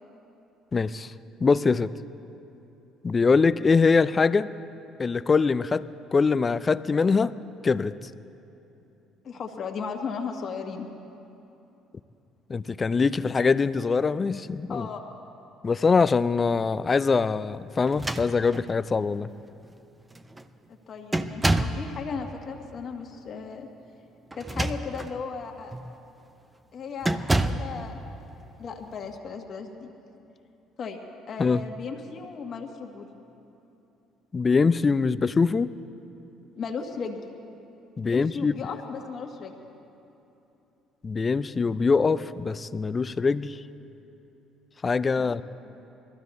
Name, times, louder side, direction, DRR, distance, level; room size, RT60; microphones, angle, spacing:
voice 1, 0.7-1.1 1.4-1.9 3.0-4.5 5.0-7.4 7.6-8.0 12.5-14.9 15.6-19.3 31.4-31.6 34.3-35.7 38.0-38.5 41.0-43.6 44.8-45.4, left 4 dB, 35° left, 15 dB, 0.4 m, -23 dB
voice 2, 9.2-10.9 14.7-15.0 20.7-23.7 24.3-25.7 26.7-28.0 28.6-29.9 30.8-31.0 31.3-33.1 36.6-37.2 38.1-39.6 45.2-45.4, left 5 dB, 50° left, 3 dB, 1.7 m, -36 dB
sound 1, 17.8-18.8 19.6-19.7 20.1-20.5 21.1-21.9 24.3-25.1 25.7-25.9 27.0-27.7, right 2 dB, 15° right, 0.7 m, -27 dB
21.5 x 14.0 x 4.1 m, 2.9 s
hypercardioid pair, 55°, 0 cm